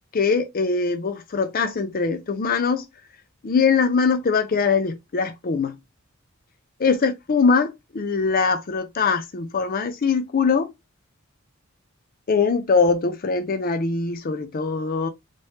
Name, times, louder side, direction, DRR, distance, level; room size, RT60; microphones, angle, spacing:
voice 1, 0.1-2.9 3.4-5.8 6.8-10.7 12.3-15.1, left 5 dB, 40° left, 0.5 m, -22 dB
4.2 x 3.3 x 3.1 m
head